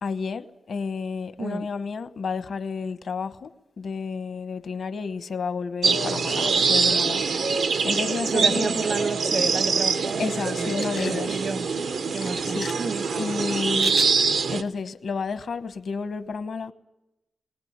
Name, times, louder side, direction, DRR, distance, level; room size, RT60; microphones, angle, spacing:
voice 1, 0.0-3.5 3.8-8.8 10.2-11.4 12.5-12.7 13.2-16.7, left 5 dB, 75° left, 1.1 m, -31 dB
voice 2, 1.4-1.7 8.3-11.7 12.1-13.1, right 4 dB, 55° right, 0.9 m, -31 dB
sound 1, 5.8-14.6, right 5 dB, 90° right, 1.0 m, -24 dB
sound 2, 10.6-11.2 12.2-12.7 13.8-14.1, left 6 dB, 90° left, 1.8 m, -37 dB
21.0 x 19.5 x 8.9 m
cardioid pair, 65°, 0 cm